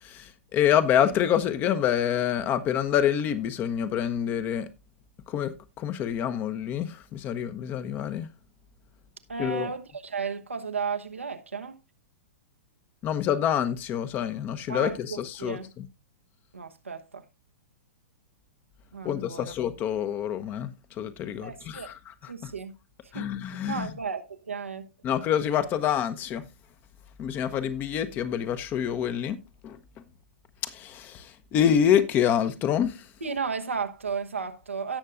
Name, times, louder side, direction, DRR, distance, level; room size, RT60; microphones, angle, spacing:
voice 1, 0.0-4.7 5.3-8.3 9.4-9.7 13.0-15.6 19.0-22.5 23.1-23.9 25.0-26.4 27.2-29.4 29.6-29.8 30.6-33.1, left 9 dB, 30° left, 0.9 m, -27 dB
voice 2, 9.3-11.8 14.7-15.7 16.5-17.2 18.9-19.5 21.4-21.9 22.3-22.7 23.1-24.9 33.2-35.0, right 5 dB, 80° right, 1.1 m, -34 dB
17.5 x 6.5 x 2.5 m
figure-of-eight pair, 110°, 7 cm